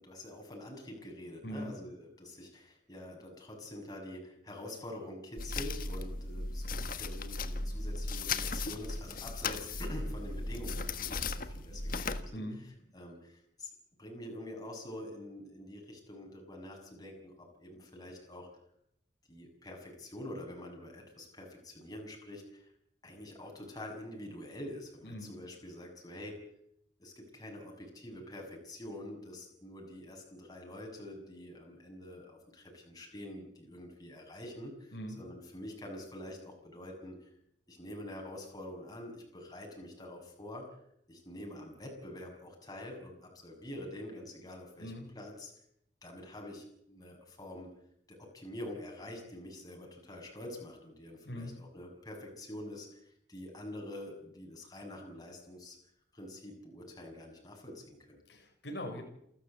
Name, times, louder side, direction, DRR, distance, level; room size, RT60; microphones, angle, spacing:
voice 1, 0.0-12.5 12.9-13.7 14.0-18.5 19.3-22.7 23.0-26.5 27.0-37.2 37.7-40.7 41.1-45.5 46.0-47.7 48.1-55.8 56.1-58.2, left 1 dB, 20° left, 1 dB, 6.9 m, -46 dB
voice 2, 1.4-1.8 12.3-12.6 25.0-25.4 34.9-35.2 44.8-45.1 51.2-51.6 58.3-59.0, equal, 80° left, 3 dB, 5.4 m, -41 dB
sound 1, 5.4-12.2, left 3 dB, 55° left, 1.5 m, -36 dB
28.5 x 13.5 x 8.2 m, 0.74 s
head